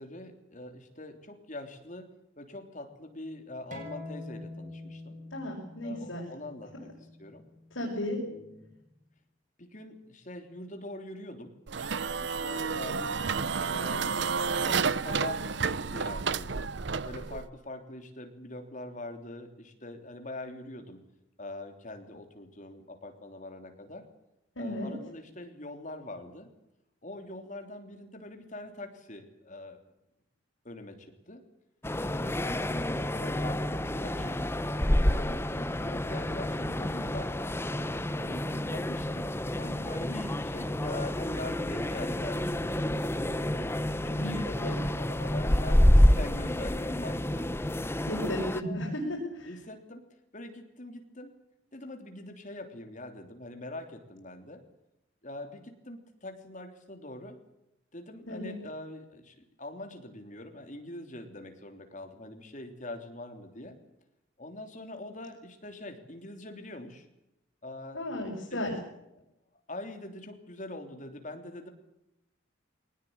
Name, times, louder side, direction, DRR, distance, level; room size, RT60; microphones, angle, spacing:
voice 1, 0.0-2.1 2.4-5.2 5.8-6.9 7.2-7.4 8.3-8.7 9.6-11.6 12.2-16.7 17.0-21.0 21.4-24.1 24.6-26.5 27.0-29.8 30.6-31.4 32.2-34.5 35.1-37.3 38.1-43.6 44.0-47.5 48.2-48.9 49.4-50.0 50.3-51.3 51.7-54.6 55.2-57.4 57.9-63.8 64.4-67.1 67.6-68.0 68.5-68.8 69.7-71.7, left 1 dB, 40° left, 5 dB, 3.3 m, -43 dB
sound 1, 3.7-8.9, left 2 dB, 40° right, 6.4 m, -46 dB
voice 2, 5.3-6.3 7.7-8.2 24.6-25.0 40.1-40.2 44.2-44.8 48.0-49.6 58.3-58.6 67.9-68.7, left 1 dB, 80° left, -2 dB, 6.1 m, -34 dB
sound 2, 11.7-17.5, right 5 dB, 65° right, 0.7 m, -31 dB
sound 3, 31.8-48.6, left 1 dB, 10° left, 0.8 m, -28 dB
22.0 x 19.5 x 8.8 m, 0.87 s
head